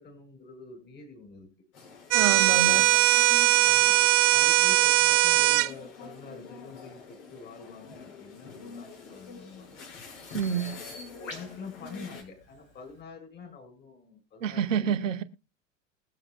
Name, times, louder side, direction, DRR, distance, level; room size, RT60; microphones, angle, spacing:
voice 1, 0.0-1.5 3.6-4.0 4.3-9.9 10.5-14.9, left 4 dB, 25° left, 4.7 m, -46 dB
sound 1, 1.7-12.2, left 5 dB, 60° left, 5.6 m, -46 dB
sound 2, 2.1-5.7, right 19 dB, 35° right, 0.5 m, -20 dB
voice 2, 2.1-2.9 10.3-10.7 14.4-15.2, right 7 dB, 70° right, 1.3 m, -28 dB
Bird vocalization bird call bird song, 8.8-13.0, left 2 dB, 80° left, 3.8 m, -50 dB
21.5 x 7.6 x 2.2 m
figure-of-eight pair, 80°, 39 cm